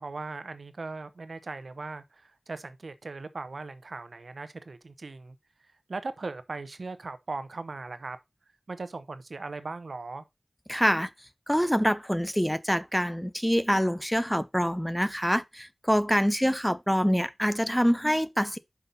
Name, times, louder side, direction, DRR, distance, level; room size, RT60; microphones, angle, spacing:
voice 1, 0.0-5.4 5.9-8.2 8.7-10.2, right 3 dB, 85° right, 0.7 m, -38 dB
voice 2, 10.7-11.1 11.5-18.6, equal, 5° left, 0.6 m, -25 dB
5.9 x 5.3 x 3.9 m
wide cardioid pair, 50°, 0 cm